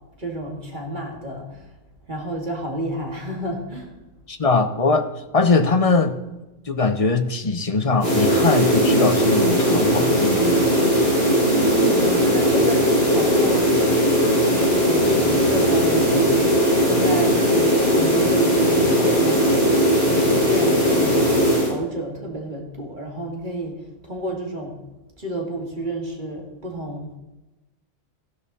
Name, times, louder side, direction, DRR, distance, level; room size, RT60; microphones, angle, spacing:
voice 1, 0.2-1.6 2.1-3.9 11.5-13.7 14.4-19.7 20.0-23.7 24.0-24.8 25.2-27.1, right 1 dB, 35° right, 1 dB, 2.3 m, -30 dB
voice 2, 4.3-5.1 5.3-6.2 6.7-10.7, left 3 dB, 30° left, 8 dB, 0.8 m, -21 dB
sound 1, 8.0-21.7, equal, 45° left, 5.3 m, -18 dB
15.0 x 11.5 x 4.1 m, 1.0 s
omnidirectional pair, 1.4 m